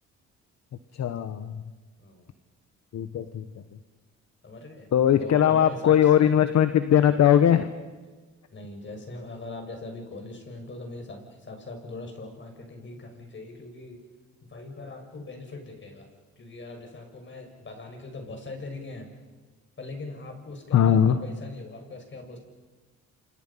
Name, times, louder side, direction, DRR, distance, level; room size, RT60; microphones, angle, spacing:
voice 1, 0.9-1.6 2.9-3.6 4.9-7.7 20.7-21.2, left 9 dB, 60° left, 10 dB, 1.3 m, -20 dB
voice 2, 2.0-2.3 4.4-4.9 5.2-6.4 8.5-14.0 14.4-16.1 16.4-19.1 19.8-22.4, left 2 dB, 40° left, 4 dB, 6.2 m, -40 dB
28.5 x 27.0 x 5.7 m, 1.3 s
cardioid pair, 90°, 30 cm